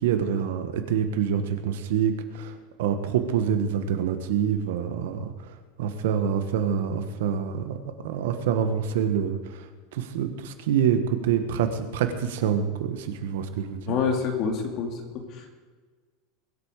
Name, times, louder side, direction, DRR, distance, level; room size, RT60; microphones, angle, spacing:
voice 1, 0.0-9.7 9.9-14.0, right 8 dB, 80° right, 8 dB, 1.6 m, -26 dB
voice 2, 13.9-15.6, left 5 dB, 40° left, 4 dB, 2.4 m, -28 dB
22.5 x 8.5 x 5.0 m, 1.4 s
supercardioid pair, 170°, 0 cm